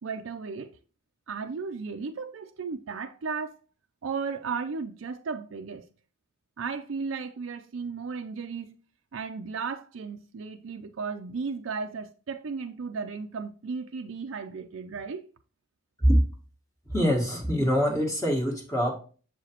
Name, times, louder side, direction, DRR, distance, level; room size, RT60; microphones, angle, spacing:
voice 1, 0.0-0.7 1.3-3.6 4.0-5.9 6.6-8.8 9.1-15.3, right 5 dB, 85° right, 0.5 m, -35 dB
voice 2, 16.9-18.9, equal, 15° left, 1.4 m, -24 dB
6.8 x 4.9 x 2.9 m
head